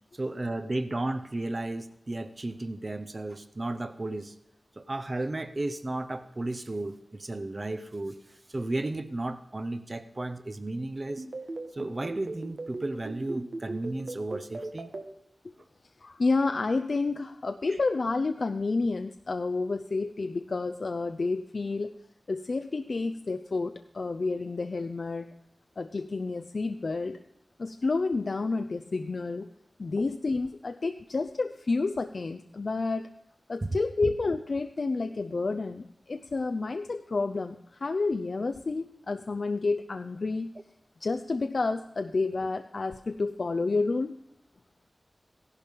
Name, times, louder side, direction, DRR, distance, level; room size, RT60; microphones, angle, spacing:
voice 1, 0.1-4.4 4.8-11.2 11.7-14.9 30.0-30.1 33.6-33.7, right 2 dB, 45° right, 11 dB, 0.8 m, -34 dB
sound 1, 11.2-15.0, right 3 dB, 80° right, 1.5 m, -36 dB
voice 2, 16.0-21.9 22.3-25.3 25.8-27.2 27.6-29.5 29.8-33.1 33.5-40.5 41.0-44.1, left 3 dB, 70° left, 8 dB, 0.5 m, -30 dB
15.0 x 11.5 x 5.3 m, 0.77 s
wide cardioid pair, 60°, 0 cm